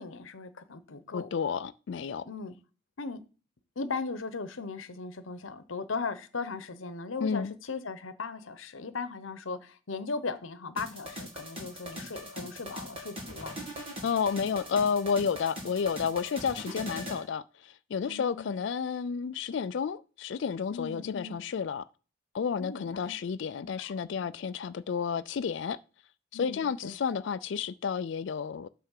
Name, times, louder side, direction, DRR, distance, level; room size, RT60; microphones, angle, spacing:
voice 1, 0.0-1.3 2.2-2.5 3.0-3.2 3.8-13.5 18.0-18.6 20.7-21.4 22.6-23.1 23.6-24.3 26.3-26.9, left 4 dB, 85° left, 0.9 m, -38 dB
voice 2, 1.1-2.3 7.2-7.5 14.0-21.9 22.3-25.8 26.3-28.7, left 6 dB, 65° left, 0.4 m, -31 dB
sound 1, 10.8-17.2, equal, 30° right, 2.3 m, -41 dB
8.1 x 3.3 x 6.5 m
head